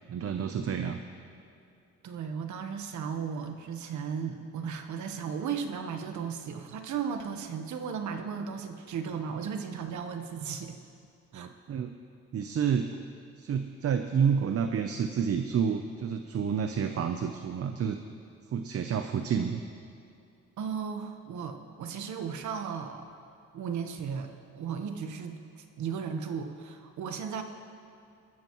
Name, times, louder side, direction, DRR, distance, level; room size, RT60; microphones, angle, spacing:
voice 1, 0.1-1.0 11.3-11.9 12.3-13.0 13.4-18.0 18.5-19.6, right 7 dB, 50° right, 7 dB, 0.8 m, -29 dB
voice 2, 2.0-10.8 11.3-11.5 20.6-23.1 23.5-27.4, right 6 dB, 70° right, 6 dB, 1.2 m, -35 dB
21.5 x 13.5 x 3.1 m, 2.6 s
cardioid pair, 90°, 30 cm